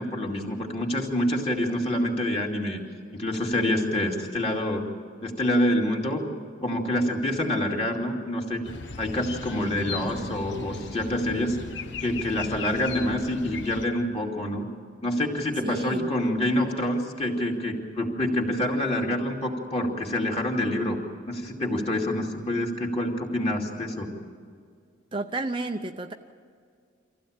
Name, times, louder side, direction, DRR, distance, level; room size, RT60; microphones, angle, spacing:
voice 1, 0.0-2.8 3.1-4.9 5.2-6.2 6.6-8.6 9.0-11.6 12.0-14.7 15.0-21.0 21.3-24.1, left 1 dB, 30° left, 0 dB, 2.7 m, -27 dB
sound 1, 8.6-13.9, left 4 dB, 60° left, 1.1 m, -37 dB
voice 2, 15.6-16.1 25.1-26.1, right 2 dB, 25° right, 5 dB, 0.7 m, -31 dB
25.5 x 15.5 x 8.8 m, 2.1 s
head